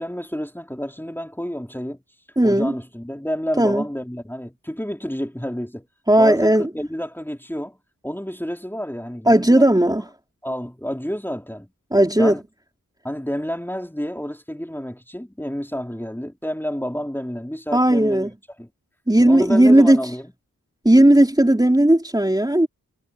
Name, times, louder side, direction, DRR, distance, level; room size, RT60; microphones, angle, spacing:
voice 1, 0.0-2.0 2.4-5.9 6.2-7.8 8.0-9.9 10.4-11.7 12.2-12.4 13.0-18.3 18.6-18.7 19.2-20.3, equal, 5° left, 5.0 m, -29 dB
voice 2, 2.4-2.7 3.6-3.8 6.1-6.7 9.3-10.0 11.9-12.4 17.7-18.3 19.1-20.0 20.8-22.7, right 1 dB, 10° right, 3.9 m, -15 dB
cardioid pair, 45°, 33 cm